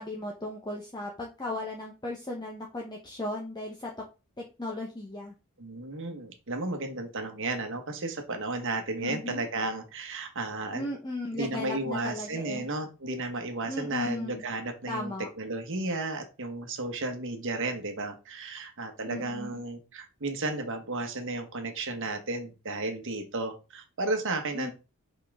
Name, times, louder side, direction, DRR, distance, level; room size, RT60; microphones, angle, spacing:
voice 1, 0.0-3.9 4.4-5.3 9.0-9.4 10.7-12.6 13.7-14.4 14.9-15.3 19.1-19.6 24.5-24.7, left 1 dB, 20° left, -1 dB, 0.9 m, -36 dB
voice 2, 5.6-10.9 11.3-24.7, right 2 dB, 60° right, 6 dB, 1.2 m, -33 dB
5.6 x 5.2 x 3.6 m, 0.30 s
head